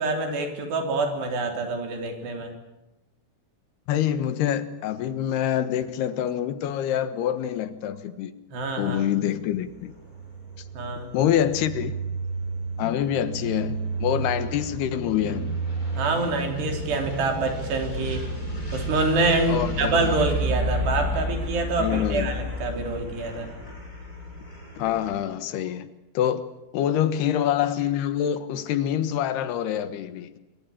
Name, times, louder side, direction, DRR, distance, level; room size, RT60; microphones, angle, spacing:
voice 1, 0.0-2.5 8.5-9.1 10.7-11.1 15.9-18.3 18.7-23.5, right 3 dB, 80° right, 5.6 m, -26 dB
voice 2, 3.9-8.3 8.8-9.9 11.1-12.0 12.8-15.6 19.5-20.1 21.8-22.3 24.8-25.9 26.1-26.4 26.7-30.3, left 10 dB, 75° left, 3.2 m, -26 dB
sound 1, 9.5-25.2, right 1 dB, 20° left, 7.7 m, -31 dB
25.5 x 23.5 x 8.8 m
omnidirectional pair, 4.8 m